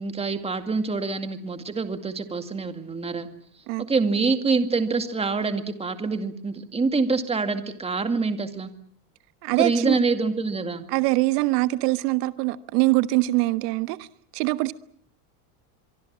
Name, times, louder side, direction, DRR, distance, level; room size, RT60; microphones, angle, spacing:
voice 1, 0.0-3.3 3.9-8.7 9.6-10.8, right 4 dB, 15° right, 2.2 m, -25 dB
voice 2, 9.4-10.0 10.9-14.1 14.3-14.7, right 20 dB, 80° right, 1.3 m, -23 dB
24.5 x 24.0 x 7.5 m
supercardioid pair, 140°, 46 cm